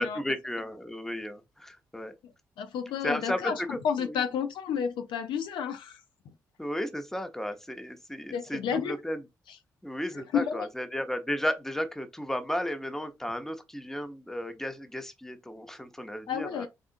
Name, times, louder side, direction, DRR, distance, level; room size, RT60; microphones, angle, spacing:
voice 1, 0.0-2.1 3.0-4.2 6.6-9.2 9.8-16.7, equal, 5° left, 0.8 m, -34 dB
voice 2, 2.6-3.5 3.8-6.0 8.3-9.0 10.3-10.7 16.3-16.7, left 7 dB, 65° left, 0.5 m, -30 dB
3.6 x 3.6 x 2.5 m
hypercardioid pair, 45°, 9 cm